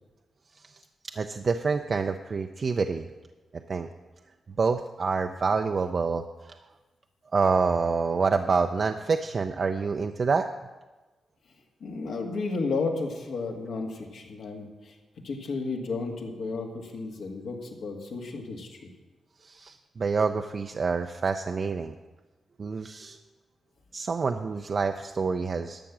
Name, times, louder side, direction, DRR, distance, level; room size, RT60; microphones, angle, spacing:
voice 1, 1.2-3.1 3.7-3.9 4.6-6.5 7.3-10.5 19.4-21.9 22.6-23.2 23.9-25.8, right 4 dB, 45° right, 6 dB, 0.5 m, -27 dB
voice 2, 11.8-14.9 15.2-18.9, left 3 dB, 80° left, 1 dB, 1.9 m, -33 dB
12.0 x 7.1 x 7.4 m, 1.2 s
cardioid pair, 100°, 0 cm